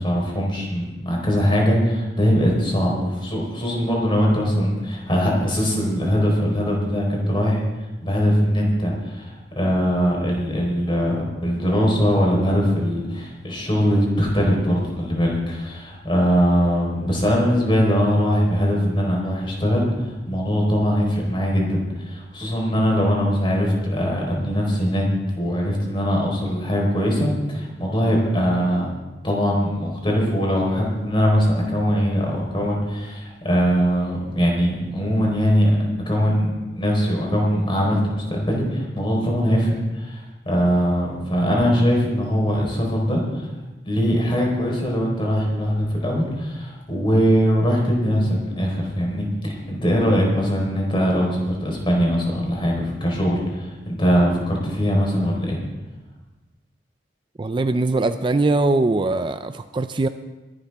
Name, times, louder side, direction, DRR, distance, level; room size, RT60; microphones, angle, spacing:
voice 1, 0.0-7.6 8.0-25.1 25.4-28.9 29.2-35.7 36.1-40.2 40.5-43.5 43.8-55.6, equal, 30° left, -1 dB, 4.2 m, -21 dB
voice 2, 57.4-60.1, right 2 dB, 30° right, 10 dB, 0.4 m, -21 dB
22.5 x 11.5 x 3.5 m, 1.1 s
head